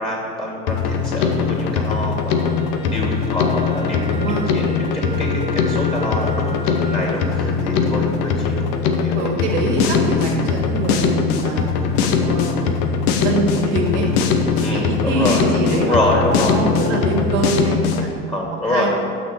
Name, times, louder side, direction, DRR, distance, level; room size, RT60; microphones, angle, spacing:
voice 1, 0.0-2.5 2.8-8.1 8.4-8.7 9.0-9.4 14.5-15.4 15.8-16.6 18.3-18.9, left 1 dB, 15° left, -2 dB, 2.8 m, -25 dB
Drum kit, 0.7-18.1, left 5 dB, 65° left, 1.0 m, -21 dB
Wind instrument woodwind instrument, 2.3-7.2, right 2 dB, 5° right, 2.0 m, -35 dB
voice 2, 4.1-4.4 7.5-7.9 9.1-11.7 12.2-12.7 13.2-14.1 14.6-18.1 18.6-18.9, right 2 dB, 70° right, 0 dB, 2.0 m, -24 dB
8.9 x 6.6 x 6.9 m, 2.3 s
figure-of-eight pair, 65°, 36 cm